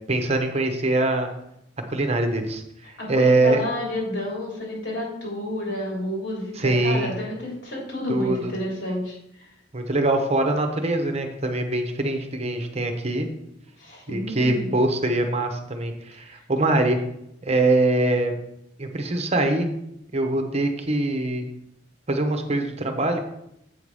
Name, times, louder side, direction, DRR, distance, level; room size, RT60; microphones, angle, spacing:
voice 1, 0.1-1.3 1.9-2.6 3.1-3.6 6.6-7.1 8.1-8.5 9.7-13.3 14.1-17.0 17.4-18.4 18.8-19.7 20.1-21.4 22.1-23.2, right 2 dB, 35° right, 5 dB, 0.9 m, -23 dB
voice 2, 3.0-9.5 13.8-14.7, left 1 dB, 70° left, -4 dB, 3.7 m, -30 dB
7.8 x 5.8 x 4.8 m, 0.79 s
head